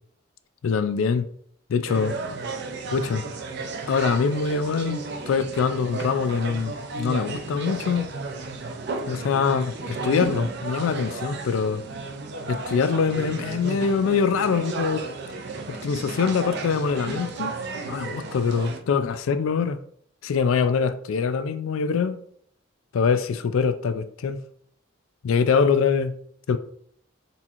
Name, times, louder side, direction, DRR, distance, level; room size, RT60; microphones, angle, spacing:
voice 1, 0.6-1.3 1.7-2.1 2.9-3.2 3.9-5.0 5.3-8.1 9.1-11.8 12.5-15.1 15.8-17.5 17.9-19.8 20.2-22.2 22.9-24.4 25.2-26.1 26.5-26.6, left 5 dB, 75° left, 0.4 m, -24 dB
sound 1, 1.9-18.8, right 3 dB, 55° right, 0.5 m, -34 dB
4.1 x 3.6 x 2.9 m
head